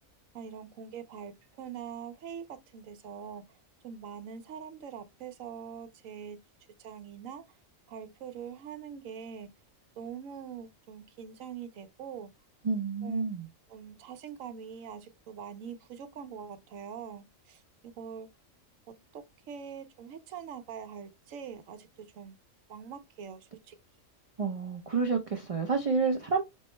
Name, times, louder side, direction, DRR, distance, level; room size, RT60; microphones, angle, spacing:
voice 1, 0.3-1.3 1.6-3.6 3.8-6.4 6.8-7.4 7.9-9.5 10.0-12.3 13.0-13.2 13.7-18.3 19.1-22.3 22.7-23.8, right 7 dB, 80° right, 1.0 m, -43 dB
voice 2, 12.6-13.5 24.4-26.4, right 4 dB, 50° right, 0.4 m, -29 dB
5.4 x 2.1 x 2.9 m
omnidirectional pair, 1.4 m